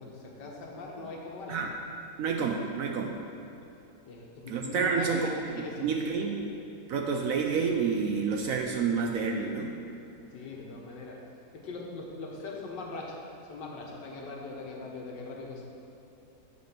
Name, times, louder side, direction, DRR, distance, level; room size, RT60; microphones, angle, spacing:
voice 1, 0.0-1.7 4.1-5.9 10.3-11.2 11.5-13.2 13.5-15.6, left 3 dB, 85° left, -1 dB, 1.7 m, -40 dB
voice 2, 2.2-3.1 4.5-6.4 6.9-9.7, right 5 dB, 70° right, 2 dB, 0.8 m, -29 dB
8.6 x 4.4 x 5.8 m, 2.9 s
omnidirectional pair, 1.8 m